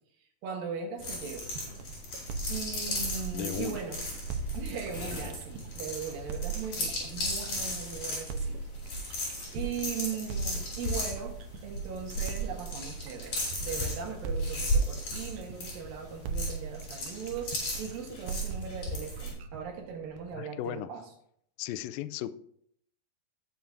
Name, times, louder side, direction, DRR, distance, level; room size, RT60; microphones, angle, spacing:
voice 1, 0.4-1.5 2.5-4.0 4.5-8.6 8.9-9.2 9.5-21.0, right 7 dB, 75° right, 2 dB, 3.0 m, -39 dB
sound 1, 1.0-19.3, left 1 dB, 45° left, 6.2 m, -35 dB
sound 2, 1.4-3.8 4.3-7.8 8.3-11.8 12.3-15.9 16.2-20.3, right 4 dB, 90° right, 2.7 m, -39 dB
voice 2, 3.3-3.8 20.4-20.9 21.6-22.3, left 13 dB, 80° left, 11 dB, 2.3 m, -36 dB
19.5 x 7.0 x 2.6 m, 0.68 s
omnidirectional pair, 4.2 m